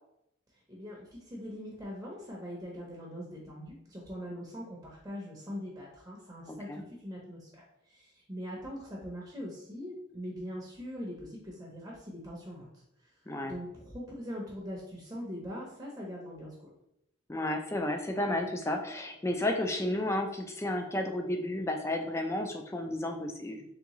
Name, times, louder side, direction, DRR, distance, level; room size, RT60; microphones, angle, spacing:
voice 1, 0.5-12.7 13.0-13.1 13.4-16.5, equal, 15° right, -3 dB, 0.7 m, -42 dB
voice 2, 6.5-6.8 13.3-13.5 17.3-23.6, left 1 dB, 15° left, 4 dB, 0.4 m, -32 dB
3.6 x 3.5 x 3.0 m, 0.80 s
head